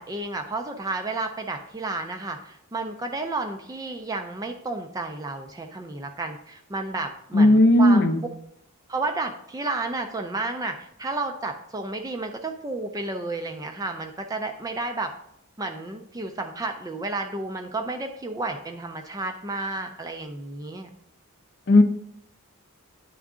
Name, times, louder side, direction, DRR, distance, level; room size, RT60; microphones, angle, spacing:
voice 1, 0.0-8.1 8.9-15.1 15.6-20.9, right 2 dB, 15° right, 4 dB, 0.3 m, -32 dB
voice 2, 7.3-8.2 21.7-21.8, left 1 dB, 45° left, 7 dB, 0.6 m, -15 dB
9.3 x 3.6 x 3.6 m, 0.77 s
head